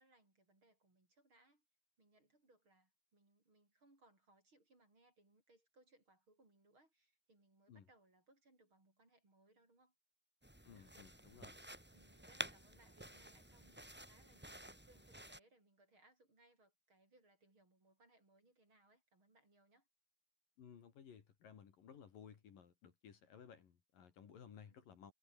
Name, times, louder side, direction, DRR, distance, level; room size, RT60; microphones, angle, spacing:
voice 1, 0.0-1.6 2.0-9.9 10.7-11.0 11.9-19.9 24.6-24.9, right 2 dB, 30° right, 8.1 m, -71 dB
sound 1, 10.4-15.4, right 1 dB, 5° right, 0.9 m, -51 dB
voice 2, 10.6-11.6 20.6-25.1, left 7 dB, 60° left, 4.2 m, -58 dB
omnidirectional pair, 4.5 m